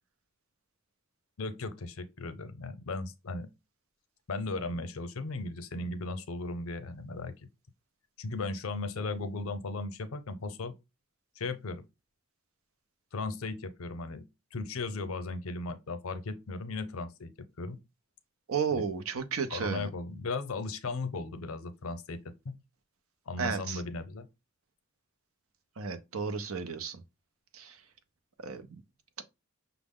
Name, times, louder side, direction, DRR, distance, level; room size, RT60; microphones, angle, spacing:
voice 1, 1.4-3.5 4.3-7.3 8.2-10.7 11.4-11.8 13.1-14.3 14.5-17.3 17.6-17.8 18.7-18.9 19.5-22.2 22.4-22.6 23.3-24.3, left 3 dB, 85° left, 0.6 m, -36 dB
voice 2, 18.5-19.9 23.4-23.8 25.8-27.0 27.5-27.8 28.4-28.6 29.2-29.3, right 6 dB, 85° right, 0.6 m, -33 dB
5.8 x 2.0 x 3.6 m
head